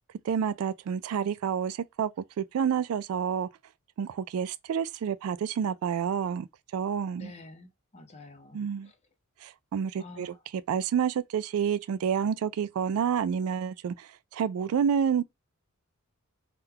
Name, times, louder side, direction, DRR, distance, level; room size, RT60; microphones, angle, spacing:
voice 1, 0.3-2.1 2.4-3.5 4.0-6.5 6.7-7.3 8.5-8.9 9.4-10.3 10.7-15.2, right 7 dB, 75° right, 0.3 m, -29 dB
voice 2, 7.1-9.0 10.0-10.4, left 2 dB, 30° left, 0.6 m, -48 dB
3.6 x 2.3 x 2.8 m
head